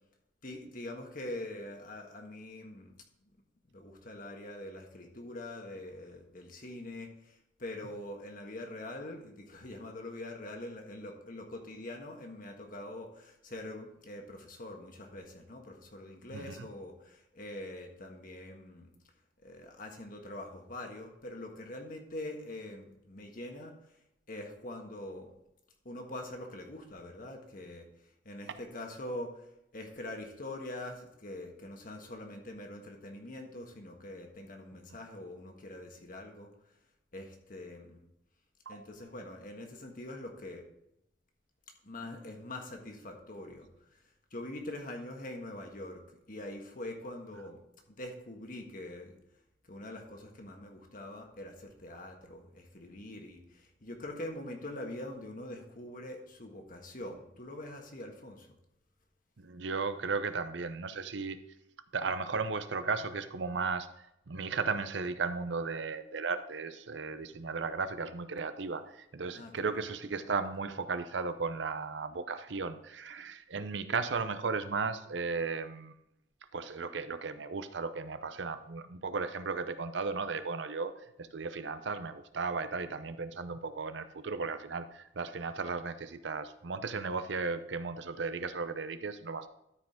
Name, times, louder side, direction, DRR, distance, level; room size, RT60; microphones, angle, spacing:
voice 1, 0.4-3.0 3.7-18.9 19.4-23.7 24.3-25.3 25.8-27.9 28.2-29.5 29.7-36.5 37.1-38.0 38.7-40.6 41.8-44.0 44.3-47.6 48.0-49.1 49.7-58.5 69.3-69.8, left 1 dB, 45° left, 3 dB, 1.5 m, -44 dB
voice 2, 16.3-16.7 38.7-38.9 59.4-61.4 61.9-63.9 64.3-75.9 76.5-80.9 81.2-89.5, right 4 dB, 70° right, 11 dB, 0.7 m, -35 dB
13.0 x 5.0 x 3.7 m, 0.82 s
head